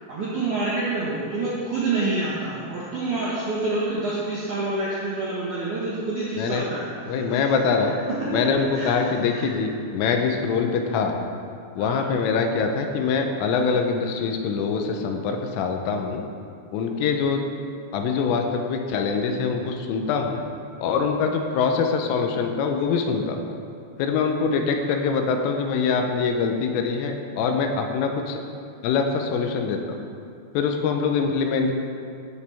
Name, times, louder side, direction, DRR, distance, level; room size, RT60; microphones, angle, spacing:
voice 1, 0.1-7.4 7.8-7.9 8.2-8.4 8.7-9.5 11.8-12.0, right 2 dB, 75° right, -7 dB, 1.8 m, -28 dB
voice 2, 7.1-7.9 8.3-11.1 11.8-16.2 16.7-17.4 17.9-20.4 20.8-23.4 24.0-28.4 28.8-30.0 30.5-31.8, left 5 dB, 80° left, 4 dB, 3.3 m, -24 dB
16.5 x 8.0 x 3.5 m, 2.4 s
omnidirectional pair, 6.0 m